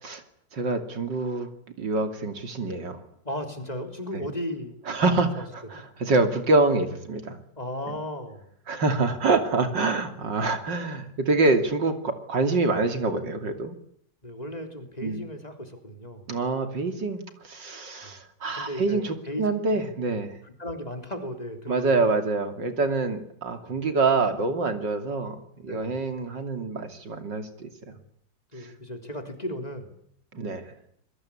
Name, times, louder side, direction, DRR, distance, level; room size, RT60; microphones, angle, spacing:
voice 1, 0.5-1.5 1.8-3.0 4.1-4.2 4.9-7.4 8.7-13.7 15.0-15.2 16.3-20.4 21.7-27.9 28.6-28.7 30.3-30.6, right 3 dB, 80° right, 8 dB, 3.4 m, -26 dB
voice 2, 3.2-4.8 5.1-5.8 7.6-8.5 14.2-16.3 18.0-18.1 18.5-19.8 20.1-22.2 23.6-23.8 25.7-26.0 27.9-28.0 28.5-29.9, left 1 dB, 20° left, 6 dB, 3.7 m, -36 dB
27.0 x 21.5 x 8.7 m, 0.70 s
omnidirectional pair, 1.9 m